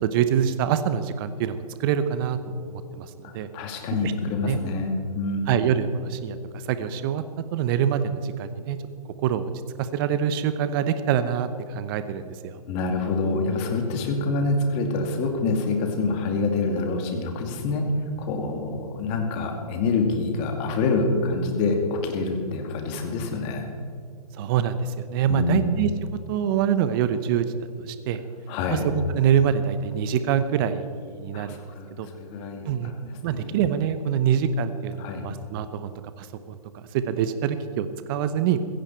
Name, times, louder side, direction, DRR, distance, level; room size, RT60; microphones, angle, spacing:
voice 1, 0.0-3.5 4.0-4.1 4.4-4.6 5.5-6.4 6.7-7.2 7.5-8.8 9.2-9.5 9.8-12.6 24.4-25.9 26.3-27.5 27.9-28.2 28.7-31.6 32.0-32.1 32.7-32.9 33.2-35.9 36.2-38.6, right 8 dB, 35° right, 11 dB, 0.9 m, -25 dB
voice 2, 3.2-5.5 12.7-17.9 18.2-23.7 25.3-25.7 28.5-28.8 31.3-31.9 32.2-33.6 35.0-35.2, left 3 dB, 30° left, 4 dB, 2.3 m, -26 dB
15.5 x 15.5 x 4.5 m, 2.4 s
hypercardioid pair, 135°, 20 cm